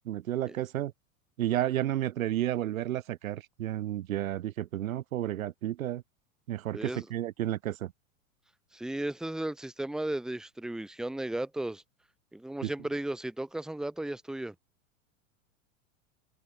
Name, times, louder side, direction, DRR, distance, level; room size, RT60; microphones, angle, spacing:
voice 1, 0.1-0.9 1.4-6.0 6.5-7.9 12.6-12.7, right 13 dB, 90° right, 0.7 m, -32 dB
voice 2, 6.7-7.1 8.7-11.8 12.3-14.5, right 1 dB, ahead, 0.9 m, -35 dB
hypercardioid pair, 110°, 40 cm